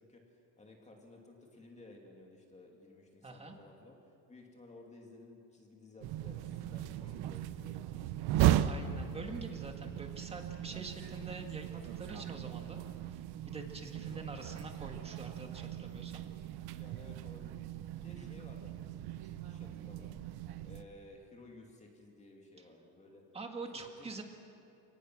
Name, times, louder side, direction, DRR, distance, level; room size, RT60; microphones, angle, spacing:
voice 1, 0.0-7.8 16.6-17.5 17.9-20.3 20.6-23.2 23.7-24.2, left 2 dB, 15° left, 0 dB, 2.4 m, -56 dB
voice 2, 3.2-3.6 8.6-12.8 13.4-16.2 18.1-18.4 23.3-24.2, right 3 dB, 15° right, 3 dB, 1.9 m, -45 dB
sound 1, 6.0-20.8, right 12 dB, 65° right, 0.9 m, -37 dB
30.0 x 19.0 x 6.2 m, 2.6 s
cardioid pair, 165°, 41 cm